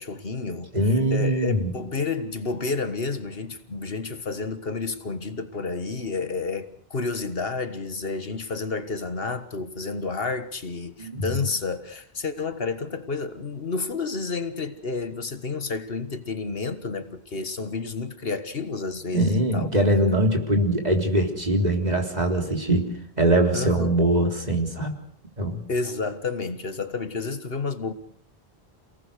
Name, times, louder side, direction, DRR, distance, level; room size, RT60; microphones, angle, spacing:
voice 1, 0.0-19.7 23.5-24.0 25.7-27.9, left 4 dB, 65° left, 1.7 m, -30 dB
voice 2, 0.7-1.7 11.0-11.4 19.1-22.9 23.2-24.9 25.4-25.6, right 1 dB, 40° right, 3.8 m, -22 dB
28.5 x 18.5 x 6.6 m
omnidirectional pair, 1.0 m